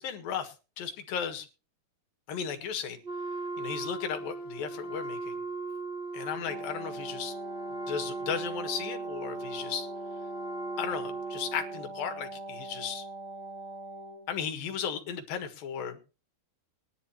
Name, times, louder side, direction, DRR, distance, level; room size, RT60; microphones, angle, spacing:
voice 1, 0.0-1.5 2.3-3.0 3.6-5.4 6.1-7.3 7.9-9.9 10.8-13.1 14.3-16.0, left 7 dB, 65° left, 6 dB, 3.2 m, -35 dB
Wind instrument woodwind instrument, 3.0-11.9, right 3 dB, 85° right, 0.5 m, -38 dB
Wind instrument woodwind instrument 2, 6.3-14.3, right 2 dB, 35° right, 5.4 m, -42 dB
20.5 x 11.0 x 2.8 m, 0.32 s
omnidirectional pair, 4.8 m